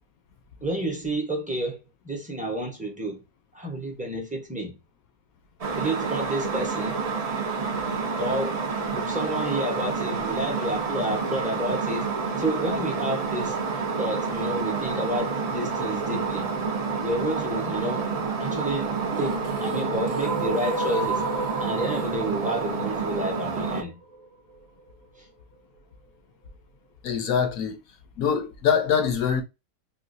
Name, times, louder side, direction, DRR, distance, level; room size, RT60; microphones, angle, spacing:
voice 1, 0.6-3.2 3.5-4.8 5.8-7.0 8.2-12.1 12.4-13.6 14.0-16.5 17.0-18.1 18.4-21.3 21.6-24.0 25.2-25.3, right 1 dB, 10° right, 0.6 m, -30 dB
kettle F mon semi anechoic, 5.6-23.8, right 4 dB, 75° right, 0.3 m, -29 dB
sound 1, 18.9-24.9, right 2 dB, 50° right, 1.1 m, -33 dB
voice 2, 27.0-27.8 28.2-29.4, left 7 dB, 70° left, 1.1 m, -24 dB
3.8 x 2.4 x 2.5 m
omnidirectional pair, 1.6 m